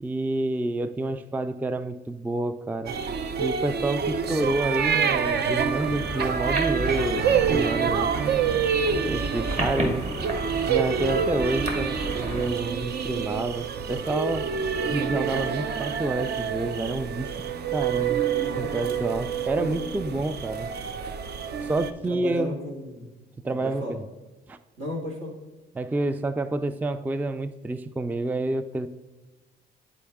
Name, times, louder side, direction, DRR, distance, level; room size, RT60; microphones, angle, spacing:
voice 1, 0.0-3.0 3.4-8.1 8.9-10.2 10.7-14.5 14.9-17.3 17.7-18.2 18.6-20.7 21.6-22.6 23.4-24.0 24.5-24.6 25.8-28.9, right 2 dB, 10° right, 12 dB, 0.3 m, -28 dB
sound 1, 2.9-21.9, right 6 dB, 55° right, 0.6 m, -27 dB
sound 2, 5.6-12.5, right 1 dB, 35° right, 2.0 m, -33 dB
voice 2, 18.3-19.0 19.6-19.7 20.0-20.1 22.0-23.1 23.4-24.0 24.8-25.3, left 1 dB, 75° right, 0 dB, 2.1 m, -35 dB
9.8 x 4.6 x 3.5 m, 1.2 s
cardioid pair, 90°, 20 cm